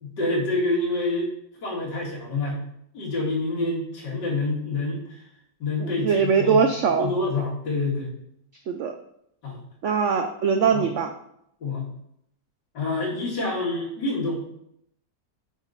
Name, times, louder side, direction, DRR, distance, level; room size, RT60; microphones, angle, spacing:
voice 1, 0.0-1.3 1.6-2.6 2.9-5.0 5.6-6.6 7.0-8.1 9.4-9.6 10.7-10.8 11.6-11.9 12.7-14.4, left 2 dB, 85° left, -4 dB, 2.5 m, -27 dB
voice 2, 5.8-7.1 8.7-8.9 9.8-11.1, right 6 dB, 80° right, 5 dB, 0.6 m, -22 dB
5.9 x 4.9 x 4.0 m, 0.74 s
omnidirectional pair, 1.8 m